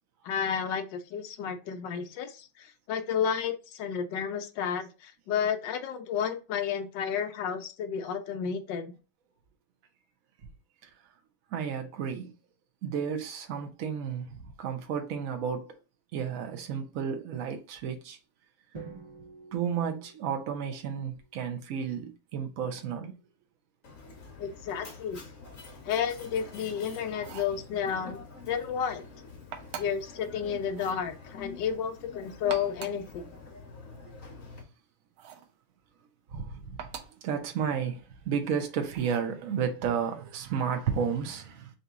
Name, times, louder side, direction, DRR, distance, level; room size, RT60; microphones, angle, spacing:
voice 1, 0.2-8.9 24.4-25.2 25.8-29.0 29.8-33.3, left 7 dB, 70° left, 1.2 m, -32 dB
voice 2, 11.5-12.3 12.8-15.7 16.1-18.2 19.5-23.2 36.3-36.8 37.2-41.7, right 7 dB, 60° right, 0.8 m, -32 dB
Drum, 18.7-20.9, right 4 dB, 25° right, 0.9 m, -47 dB
Mechanisms, 23.8-34.6, left 4 dB, 45° left, 1.4 m, -47 dB
sound 1, 27.1-27.6 29.5-30.1 30.7-31.0 32.3-33.1 35.2-35.5 36.8-37.2 38.9-39.3, right 8 dB, 80° right, 1.5 m, -43 dB
4.0 x 2.9 x 3.6 m
omnidirectional pair, 2.3 m